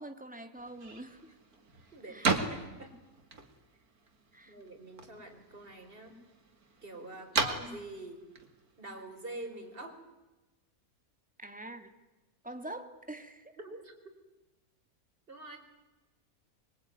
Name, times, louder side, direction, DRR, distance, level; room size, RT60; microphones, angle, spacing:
voice 1, 0.0-1.4 2.1-2.3 4.3-4.6 11.4-11.9 12.4-13.6, right 1 dB, 5° right, 6 dB, 2.1 m, -45 dB
sound 1, 0.6-9.7, right 4 dB, 75° right, 2.8 m, -38 dB
voice 2, 1.9-2.9 4.5-6.2 6.8-8.2 8.8-10.0 13.6-13.9 15.3-15.6, right 2 dB, 35° right, 4 dB, 4.6 m, -45 dB
25.0 x 23.0 x 9.5 m, 1.1 s
omnidirectional pair, 1.6 m